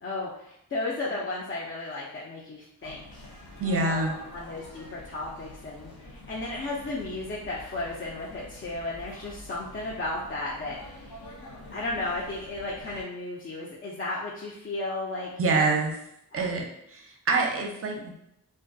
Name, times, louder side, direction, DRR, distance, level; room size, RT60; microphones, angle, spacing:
voice 1, 0.0-3.2 3.6-11.3 11.7-15.3 16.3-16.4, left 2 dB, 35° left, -5 dB, 0.4 m, -34 dB
sound 1, 2.8-13.0, left 1 dB, 75° left, 0.7 m, -46 dB
voice 2, 3.6-4.2 15.4-16.0 16.3-18.2, right 3 dB, 35° right, 1 dB, 0.5 m, -26 dB
2.3 x 2.1 x 2.5 m, 0.78 s
wide cardioid pair, 70°, 38 cm